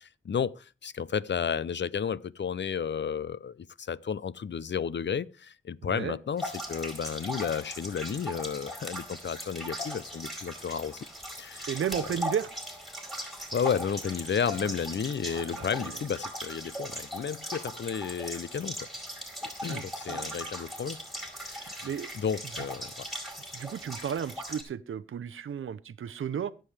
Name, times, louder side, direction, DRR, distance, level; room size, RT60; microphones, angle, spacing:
voice 1, 0.0-11.1 11.4-11.7 13.5-18.9 19.4-21.0 21.4-21.9 22.1-23.1, left 7 dB, 65° left, 0.6 m, -32 dB
voice 2, 5.8-6.2 11.7-12.5 14.6-14.7 15.3-16.0 19.7-20.5 21.8-22.1 23.5-26.5, right 8 dB, 85° right, 0.6 m, -34 dB
sound 1, 6.4-24.6, equal, ahead, 4.6 m, -39 dB
23.0 x 7.7 x 3.3 m
cardioid pair, 65°, 20 cm